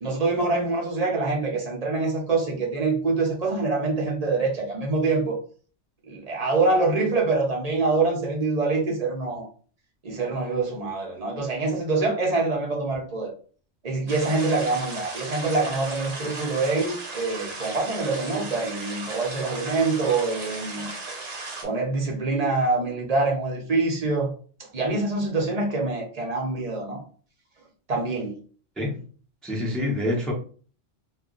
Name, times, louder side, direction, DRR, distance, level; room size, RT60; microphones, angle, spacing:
voice 1, 0.0-5.4 6.1-9.5 10.0-13.3 13.8-20.9 21.6-24.3 24.7-27.0 27.9-28.4, right 3 dB, 40° right, 0.7 m, -25 dB
sound 1, 14.1-21.6, right 3 dB, 55° right, 1.2 m, -36 dB
voice 2, 29.4-30.3, left 1 dB, ahead, 0.6 m, -26 dB
2.3 x 2.1 x 3.7 m
omnidirectional pair, 1.3 m